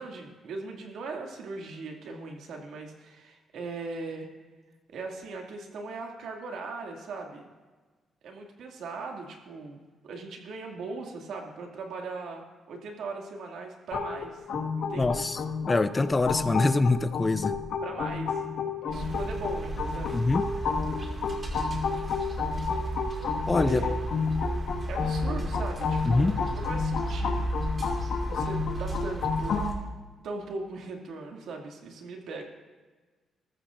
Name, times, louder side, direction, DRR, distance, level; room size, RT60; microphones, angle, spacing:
voice 1, 0.0-4.3 4.9-7.5 8.2-14.4 14.8-15.2 17.8-18.4 18.8-20.2 23.6-23.9 24.9-27.5 28.2-29.6 30.2-32.4, right 3 dB, 75° right, 2 dB, 2.2 m, -39 dB
sound 1, 13.9-29.7, left 5 dB, 75° left, 1.6 m, -31 dB
voice 2, 15.0-15.4 15.7-17.6 20.1-20.4 23.5-23.8 26.0-26.4, left 3 dB, 20° left, 12 dB, 0.4 m, -24 dB
sound 2, 18.9-29.7, right 1 dB, 30° right, 2.0 m, -33 dB
20.0 x 14.0 x 2.5 m, 1.3 s
cardioid pair, 150°, 0 cm